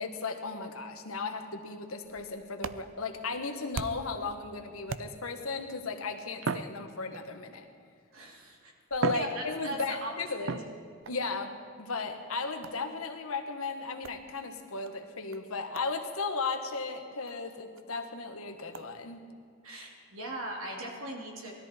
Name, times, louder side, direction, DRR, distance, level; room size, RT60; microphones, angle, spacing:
voice 1, 0.0-7.7 8.9-10.6 11.1-19.2, left 4 dB, 90° left, 5 dB, 1.5 m, -35 dB
sound 1, 2.0-4.2 4.9-5.5 6.4-7.5 8.3-8.4 8.9-10.0 10.5-11.2 12.6-12.9 14.0-14.2 14.8-14.9 15.3-15.4 15.7-15.9 16.2-16.3 16.7-16.8 17.3-17.4 17.8-17.9 18.7-18.9, right 5 dB, 65° right, 0.5 m, -37 dB
voice 2, 8.1-8.7 9.1-10.1 10.4-10.5 19.6-21.5, right 1 dB, 80° right, -1 dB, 2.8 m, -39 dB
19.5 x 13.5 x 4.4 m, 2.4 s
head